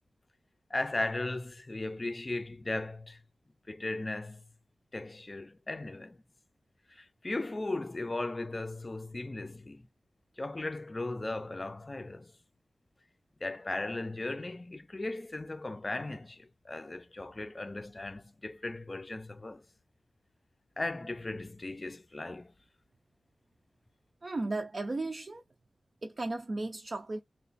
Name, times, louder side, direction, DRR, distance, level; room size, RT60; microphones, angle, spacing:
voice 1, 0.7-3.2 3.7-4.4 4.9-6.2 6.9-9.8 10.4-12.3 13.4-19.6 20.8-22.5, left 2 dB, 30° left, 0.5 m, -37 dB
voice 2, 24.2-25.4 26.0-27.2, right 2 dB, 45° right, 0.5 m, -35 dB
3.0 x 2.2 x 4.0 m
wide cardioid pair, 95°, 0 cm